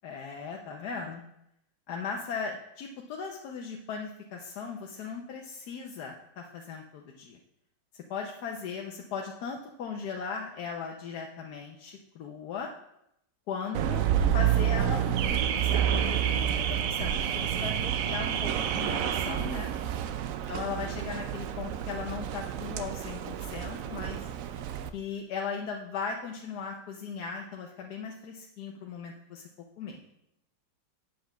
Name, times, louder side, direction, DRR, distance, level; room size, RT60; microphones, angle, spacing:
voice 1, 0.0-1.2 1.9-7.4 7.9-12.7 13.5-14.1 14.3-19.7 20.5-24.2 24.9-29.5 29.8-30.0, left 5 dB, 65° left, 1 dB, 1.2 m, -38 dB
Car / Alarm, 13.7-24.9, right 10 dB, 75° right, 0.7 m, -29 dB
7.7 x 5.1 x 7.1 m, 0.80 s
omnidirectional pair, 2.0 m